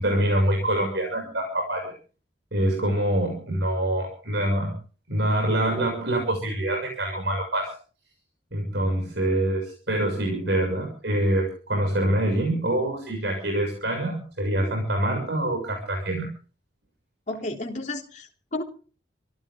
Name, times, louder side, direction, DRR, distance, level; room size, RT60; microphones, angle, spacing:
voice 1, 0.0-1.9 2.5-4.7 5.1-7.7 8.5-16.3, right 1 dB, 65° right, 2 dB, 6.9 m, -25 dB
voice 2, 17.3-18.6, left 2 dB, 40° left, 1 dB, 3.5 m, -32 dB
26.5 x 14.0 x 3.8 m, 0.40 s
head